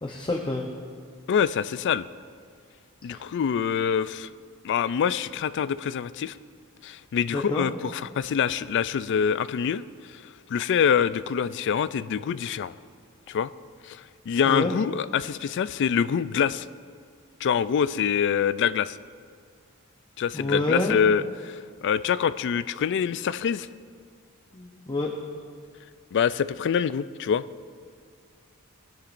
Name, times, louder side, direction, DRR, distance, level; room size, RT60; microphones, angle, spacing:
voice 1, 0.0-0.7 3.1-3.2 7.3-7.7 14.4-14.7 20.3-21.0 24.5-25.1, left 2 dB, 20° left, 1 dB, 0.7 m, -28 dB
voice 2, 1.3-2.1 3.0-4.3 4.6-6.4 6.8-9.8 10.1-10.2 10.5-12.7 13.3-13.5 13.8-16.7 17.4-19.0 20.2-23.7 26.1-27.4, left 7 dB, 55° left, 15 dB, 0.3 m, -25 dB
20.0 x 10.0 x 2.6 m, 2.1 s
head